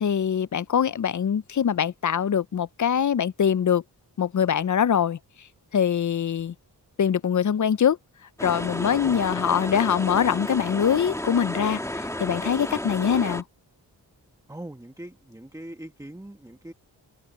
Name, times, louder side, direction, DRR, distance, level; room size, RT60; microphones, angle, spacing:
voice 1, 0.0-3.8 4.2-5.2 5.7-6.5 7.0-8.0 8.4-13.4, left 8 dB, 50° left, 0.6 m, -23 dB
sound 1, 8.4-13.4, left 1 dB, 5° left, 2.1 m, -32 dB
voice 2, 14.5-16.7, right 1 dB, 10° right, 1.6 m, -41 dB
cardioid pair, 65°, 39 cm